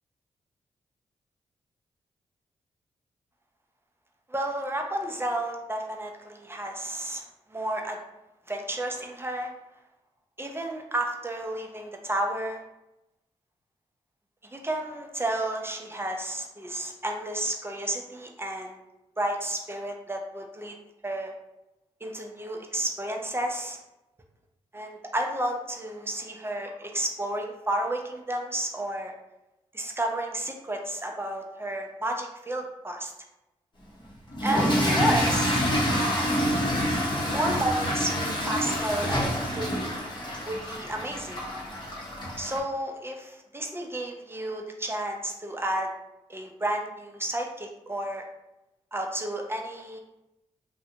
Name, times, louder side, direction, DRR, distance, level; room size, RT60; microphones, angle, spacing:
voice 1, 4.3-8.0 8.5-9.5 10.4-12.6 14.4-18.8 19.2-20.8 21.0-21.3 22.0-23.8 24.7-29.1 29.7-33.1 34.4-36.3 37.3-39.9 40.4-41.4 42.4-45.9 46.3-48.2 48.9-50.0, right 1 dB, 20° right, 2 dB, 0.5 m, -32 dB
Toilet flush / Fill (with liquid), 34.3-42.6, equal, 35° left, 0.8 m, -27 dB
2.5 x 2.1 x 2.8 m, 0.92 s
supercardioid pair, 45°, 13 cm